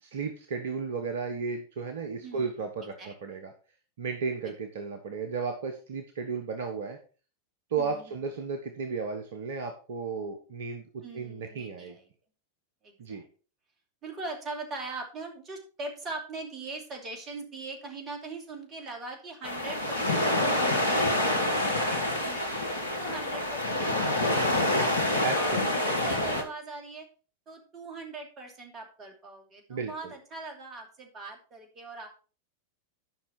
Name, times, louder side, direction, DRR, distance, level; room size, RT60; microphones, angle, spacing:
voice 1, 0.0-3.5 4.0-7.0 7.7-12.0 13.0-13.2 25.2-25.9 29.7-30.1, right 5 dB, 60° right, 6 dB, 1.2 m, -34 dB
voice 2, 2.2-2.6 3.0-3.1 4.4-4.5 7.8-8.1 11.0-12.1 12.8-13.2 14.0-22.6 23.0-27.1 27.5-32.1, right 3 dB, 30° right, 3 dB, 2.7 m, -41 dB
sound 1, 19.4-26.4, left 1 dB, 75° left, 1.5 m, -27 dB
11.0 x 5.7 x 4.4 m, 0.37 s
figure-of-eight pair, 90°, 0 cm